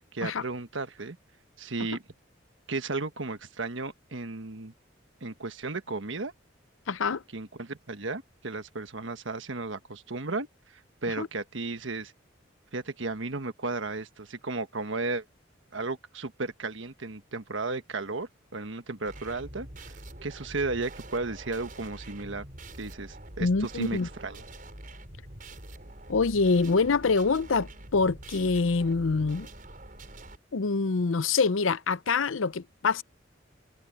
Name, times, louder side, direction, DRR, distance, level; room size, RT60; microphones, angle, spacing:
voice 1, 0.1-1.2 1.6-2.0 2.7-4.7 5.2-6.3 7.3-12.1 12.7-15.2 15.7-22.5 22.8-24.4, right 3 dB, 70° right, 1.4 m, -34 dB
voice 2, 6.9-7.2 11.2-11.3 23.4-24.1 26.1-29.5 30.5-33.0, left 4 dB, 85° left, 0.6 m, -25 dB
sound 1, 19.1-30.4, right 1 dB, 45° right, 6.6 m, -45 dB
head